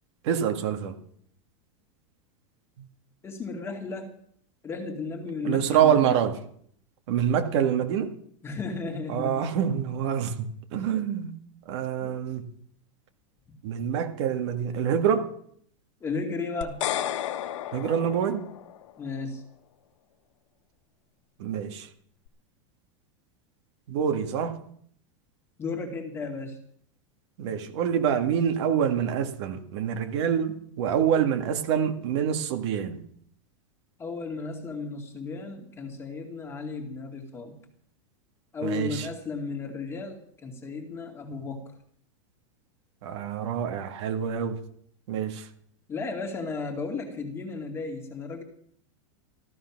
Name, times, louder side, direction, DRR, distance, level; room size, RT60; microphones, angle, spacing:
voice 1, 0.2-1.0 2.8-2.9 5.4-6.4 7.1-8.1 9.1-11.4 11.7-12.5 13.6-15.3 17.7-18.5 21.4-21.9 23.9-24.6 27.4-33.0 38.6-39.1 43.0-44.6 45.1-45.5, right 8 dB, 60° right, 6 dB, 1.9 m, -26 dB
voice 2, 3.2-4.1 4.6-6.2 8.4-9.6 10.7-10.9 12.0-12.2 16.0-16.9 19.0-19.4 25.6-26.6 34.0-37.6 38.5-41.6 45.9-48.4, left 4 dB, 15° left, 4 dB, 2.2 m, -34 dB
sound 1, 16.6-18.9, left 11 dB, 70° left, 1.3 m, -32 dB
14.5 x 13.5 x 6.0 m, 0.64 s
supercardioid pair, 160°, 17 cm